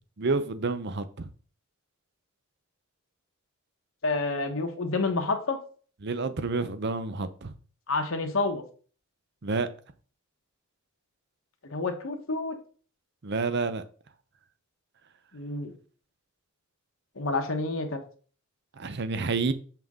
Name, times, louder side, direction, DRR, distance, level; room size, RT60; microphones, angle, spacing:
voice 1, 0.2-1.3 6.0-7.5 9.4-9.7 13.2-13.8 18.8-19.5, right 4 dB, 55° right, 0.7 m, -29 dB
voice 2, 4.0-5.6 7.9-8.6 11.6-12.6 15.3-15.7 17.2-18.0, left 3 dB, 65° left, 1.2 m, -29 dB
7.1 x 5.8 x 3.7 m
head